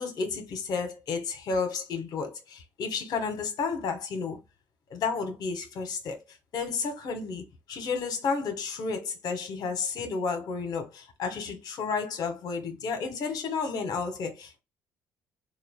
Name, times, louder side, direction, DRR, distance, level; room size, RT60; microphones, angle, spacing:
voice 1, 0.0-4.4 4.9-6.2 6.5-14.6, left 5 dB, 65° left, 1.5 m, -32 dB
3.8 x 2.5 x 3.7 m
supercardioid pair, 75°, 7 cm